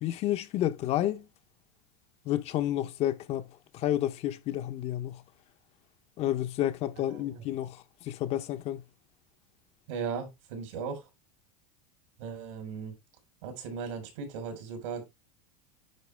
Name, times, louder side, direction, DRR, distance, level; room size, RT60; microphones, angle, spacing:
voice 1, 0.0-1.2 2.3-3.5 3.7-5.2 6.2-8.8, left 12 dB, 40° left, 0.8 m, -30 dB
voice 2, 7.1-7.4 9.9-11.1 12.2-12.9 13.4-15.1, right 6 dB, 75° right, 4.2 m, -37 dB
9.7 x 4.6 x 3.3 m
supercardioid pair, 135°, 16 cm